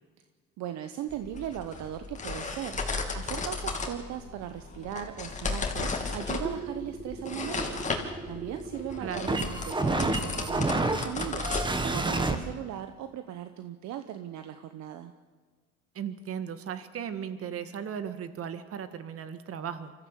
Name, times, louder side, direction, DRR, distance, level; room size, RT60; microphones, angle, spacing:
voice 1, 0.6-7.9 8.3-15.1, right 11 dB, 65° right, 9 dB, 1.1 m, -38 dB
sound 1, 1.1-12.3, left 4 dB, 25° left, 2.8 m, -35 dB
sound 2, 6.4-12.4, right 2 dB, 15° right, 1.8 m, -31 dB
voice 2, 9.0-9.4 16.0-19.9, right 8 dB, 50° right, 11 dB, 1.8 m, -36 dB
24.5 x 14.5 x 8.3 m, 1.5 s
cardioid pair, 105°, 31 cm